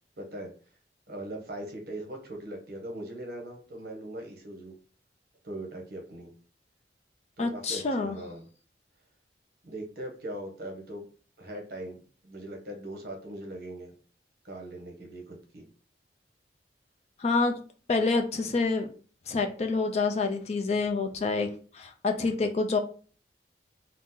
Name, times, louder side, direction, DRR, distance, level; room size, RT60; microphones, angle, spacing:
voice 1, 0.2-0.5 1.1-4.7 5.4-6.3 7.4-8.4 9.6-11.0 11.4-12.0 12.2-13.9 14.4-15.6, right 1 dB, 60° right, 2 dB, 0.7 m, -40 dB
voice 2, 7.4-8.2 17.2-17.6 17.9-18.9 19.3-22.8, left 3 dB, 35° left, 5 dB, 0.4 m, -27 dB
2.8 x 2.0 x 3.5 m, 0.41 s
head